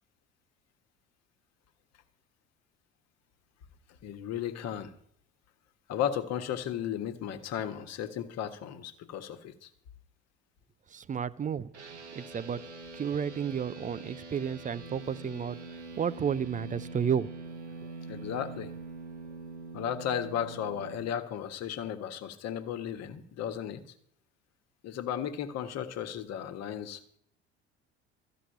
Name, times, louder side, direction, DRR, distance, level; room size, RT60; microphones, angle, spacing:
voice 1, 4.0-4.9 5.9-9.7 18.1-18.7 19.7-23.8 24.8-27.0, left 9 dB, 50° left, 1.4 m, -35 dB
voice 2, 10.9-11.7 12.1-12.6 12.9-15.6 16.0-17.3, right 7 dB, 25° right, 0.6 m, -32 dB
sound 1, 11.7-21.1, right 3 dB, 85° right, 1.6 m, -44 dB
14.0 x 6.1 x 9.1 m
figure-of-eight pair, 55°, 34 cm